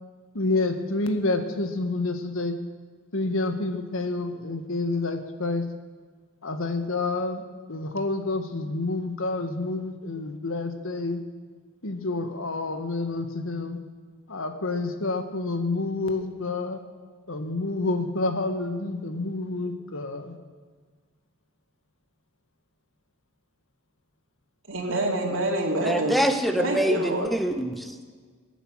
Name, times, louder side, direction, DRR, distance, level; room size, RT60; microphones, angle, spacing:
voice 1, 0.3-2.5 3.1-5.6 6.4-7.4 7.7-11.2 11.8-13.8 14.3-16.8 17.3-20.3, left 2 dB, 85° left, 7 dB, 1.6 m, -28 dB
voice 2, 24.7-26.1 26.6-27.3, right 1 dB, 70° right, 1 dB, 2.8 m, -26 dB
voice 3, 25.8-27.9, equal, ahead, 7 dB, 0.9 m, -25 dB
22.5 x 9.1 x 6.4 m, 1.5 s
head